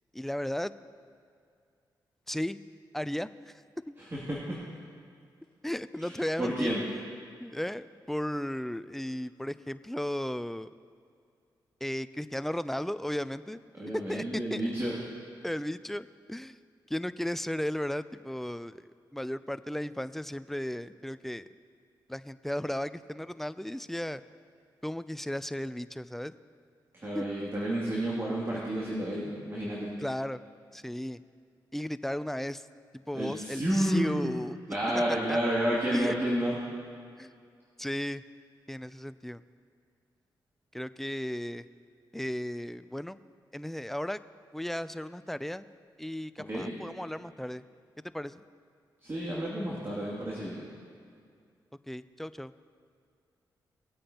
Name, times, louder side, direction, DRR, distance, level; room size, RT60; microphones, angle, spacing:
voice 1, 0.1-0.7 2.3-2.6 2.9-3.5 3.9-4.0 5.6-6.8 7.4-10.7 11.8-13.6 14.1-14.2 14.5-14.7 15.4-16.6 16.9-21.5 22.1-24.2 24.8-26.3 27.1-27.2 30.0-30.4 30.7-31.2 31.7-32.7 33.1-34.6 34.9-35.4 35.9-36.2 37.2-37.4 37.8-38.2 38.7-39.4 40.7-41.7 42.1-43.2 43.5-44.2 44.5-45.7 46.0-47.6 48.1-48.4 51.9-52.5, left 1 dB, 5° left, 14 dB, 0.4 m, -35 dB
voice 2, 4.0-4.6 6.0-6.8 13.8-15.0 26.9-29.9 33.1-34.3 34.7-36.6 46.5-46.7 49.0-50.7, right 1 dB, 30° right, -6 dB, 2.6 m, -31 dB
20.0 x 8.6 x 2.9 m, 2.3 s
cardioid pair, 55°, 8 cm